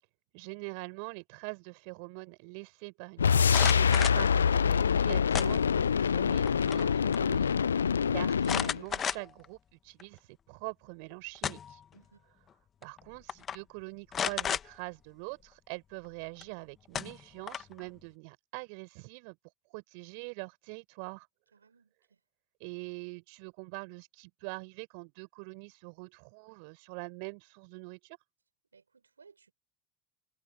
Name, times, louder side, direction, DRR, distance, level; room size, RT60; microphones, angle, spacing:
voice 1, 0.3-7.7 8.1-11.8 12.8-19.4 19.7-21.3 22.6-28.2, right 37 dB, 65° right, 6.3 m, -44 dB
sound 1, 3.2-8.8, left 6 dB, 85° left, 0.4 m, -25 dB
sound 2, 3.4-4.3 5.3-5.9 6.3-6.9 7.1-7.2 8.4-9.5 10.0-10.1 11.1-11.8 12.8-13.0 13.3-13.6 14.1-14.7 16.4-16.5 16.9-17.8, left 8 dB, 35° left, 1.6 m, -33 dB
voice 2, 11.9-12.2 21.5-22.2 28.7-29.5, right 5 dB, 85° right, 6.7 m, -61 dB
figure-of-eight pair, 70°, 0 cm